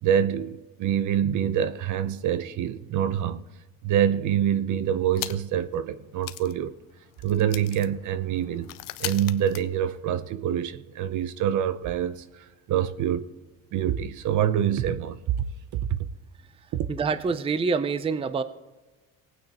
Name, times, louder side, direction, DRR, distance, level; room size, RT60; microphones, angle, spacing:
voice 1, 0.0-3.4 3.8-6.7 7.2-8.7 9.0-13.3 13.7-15.5 15.7-16.0 16.7-16.9, right 9 dB, 60° right, 0.7 m, -26 dB
sound 1, 5.1-5.7 5.9-6.0 6.2-10.3, left 16 dB, 75° left, 0.6 m, -39 dB
voice 2, 16.9-18.4, right 5 dB, 15° right, 0.5 m, -26 dB
19.0 x 9.2 x 2.9 m
cardioid pair, 130°, 34 cm